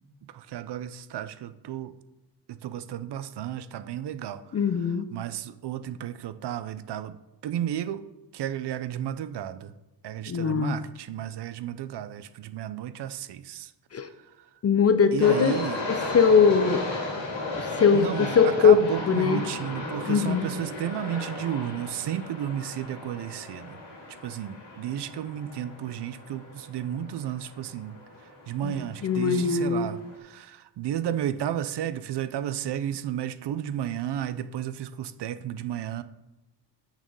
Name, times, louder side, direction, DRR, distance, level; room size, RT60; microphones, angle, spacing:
voice 1, 0.3-1.9 2.5-4.4 5.1-7.2 7.4-8.0 8.3-9.7 10.0-13.7 15.1-15.8 17.9-23.8 24.2-28.0 28.5-36.0, right 10 dB, 70° right, 12 dB, 0.6 m, -33 dB
voice 2, 4.5-5.1 10.3-10.8 13.9-14.1 14.6-15.5 15.9-16.8 17.6-18.1 18.3-19.4 20.1-20.5 28.6-28.8 29.0-29.9, left 6 dB, 35° left, 11 dB, 0.5 m, -21 dB
sound 1, 15.2-30.2, left 2 dB, 80° left, 2.6 m, -36 dB
6.6 x 6.1 x 5.3 m, 1.0 s
cardioid pair, 110°, 43 cm